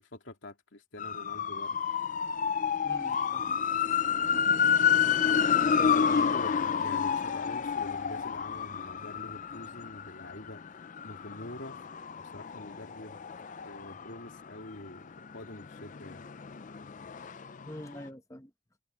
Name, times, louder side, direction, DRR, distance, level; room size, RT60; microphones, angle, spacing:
voice 1, 0.0-1.8 5.8-10.6 11.0-11.8 12.2-13.3 13.6-16.3, left 1 dB, 60° left, 2.8 m, -45 dB
sound 1, 1.0-14.7 15.1-17.7 17.9-18.0, left 7 dB, 40° left, 0.4 m, -29 dB
voice 2, 2.8-3.6 5.5-6.2 17.7-18.5, equal, 15° left, 1.0 m, -45 dB
head